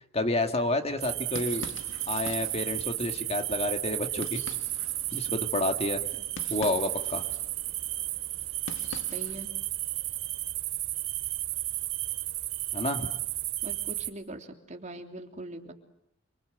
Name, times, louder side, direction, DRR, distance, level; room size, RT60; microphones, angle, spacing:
voice 1, 0.1-1.7 2.1-4.4 5.1-6.0 6.5-7.2 12.7-13.1, left 2 dB, 30° left, 6 dB, 2.1 m, -29 dB
sound 1, 0.9-9.5, left 4 dB, 60° left, 1.8 m, -46 dB
sound 2, 1.0-14.1, right 15 dB, 75° right, 3.3 m, -33 dB
voice 2, 9.1-9.5 13.6-15.7, right 1 dB, 35° right, 4 dB, 3.1 m, -42 dB
28.5 x 24.5 x 8.0 m, 0.79 s
head